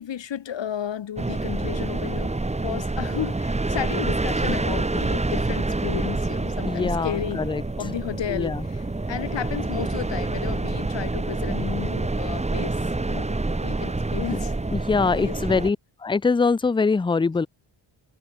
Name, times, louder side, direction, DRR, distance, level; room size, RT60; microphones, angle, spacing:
voice 1, 0.0-7.4 7.8-14.5 15.2-15.4, left 9 dB, 60° left, 0.9 m, -33 dB
sound 1, 1.2-15.7, right 2 dB, 15° right, 0.9 m, -27 dB
voice 2, 6.6-7.6 8.3-8.6 14.3-14.4 14.7-15.8 16.0-17.5, left 4 dB, 10° left, 0.3 m, -23 dB
wide cardioid pair, 80°, 49 cm